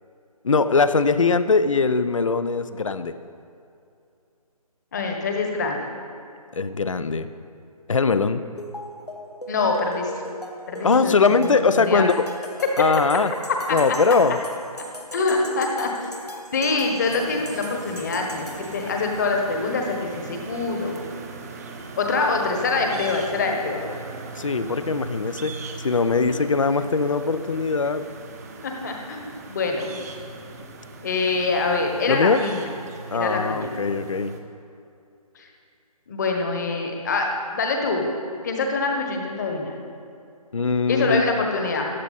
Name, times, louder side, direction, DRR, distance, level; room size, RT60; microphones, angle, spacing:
voice 1, 0.4-3.2 6.5-7.3 7.9-8.4 10.8-12.3 12.8-13.3 13.7-14.4 24.4-28.0 32.1-32.4 33.1-34.3 40.5-41.2, left 4 dB, 55° left, 12 dB, 0.6 m, -21 dB
voice 2, 4.9-5.9 9.5-10.2 10.7-12.1 13.7-14.4 15.1-16.1 16.5-21.0 22.0-23.8 28.6-30.0 31.0-32.7 33.1-33.7 35.3-35.5 36.1-38.1 38.4-39.8 40.9-41.9, left 3 dB, 30° left, 2 dB, 1.3 m, -25 dB
sound 1, 8.6-19.2, left 1 dB, 85° left, 1.6 m, -39 dB
sound 2, 17.0-34.4, right 4 dB, 25° right, 0.8 m, -39 dB
14.0 x 10.5 x 4.1 m, 2.6 s
figure-of-eight pair, 150°, 20 cm